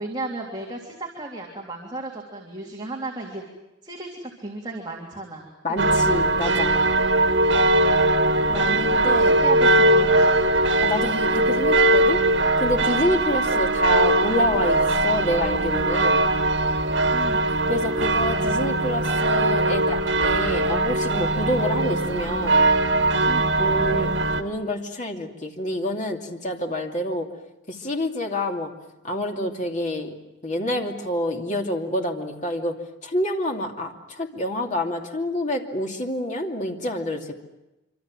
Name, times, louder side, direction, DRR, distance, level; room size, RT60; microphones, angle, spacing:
voice 1, 0.0-3.4 3.8-5.5 5.8-6.0 8.7-10.5 17.1-17.5 23.2-23.7, right 2 dB, 20° right, -1 dB, 3.2 m, -35 dB
voice 2, 5.6-6.7 8.5-9.4 10.8-12.2 12.6-16.2 17.7-22.7 23.6-24.1 24.4-27.3 27.7-28.7 29.0-30.1 30.4-32.8 33.0-37.4, left 1 dB, 40° left, 2 dB, 2.7 m, -27 dB
sound 1, 5.8-24.4, right 2 dB, 80° right, 1.8 m, -20 dB
26.0 x 25.5 x 7.7 m, 0.97 s
head